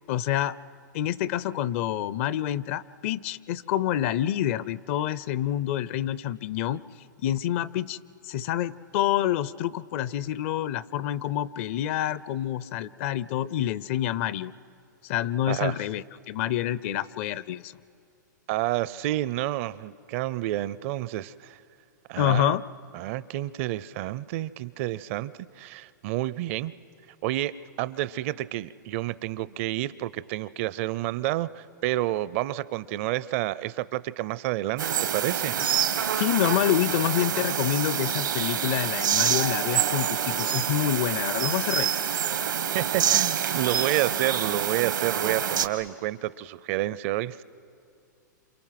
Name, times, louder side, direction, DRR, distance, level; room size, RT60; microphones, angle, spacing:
voice 1, 0.1-0.5 0.9-6.8 7.2-8.0 8.2-14.5 15.0-17.7 22.2-22.6 36.1-41.9, left 12 dB, 45° left, 19 dB, 0.5 m, -27 dB
voice 2, 15.5-15.8 18.5-21.6 22.1-22.6 22.9-26.7 27.2-34.8 35.1-35.6 42.7-47.4, right 15 dB, 45° right, 18 dB, 0.5 m, -29 dB
sound 1, 34.8-45.7, right 9 dB, 90° right, 1.4 m, -26 dB
28.0 x 27.5 x 5.9 m, 2.5 s
hypercardioid pair, 140°, 10 cm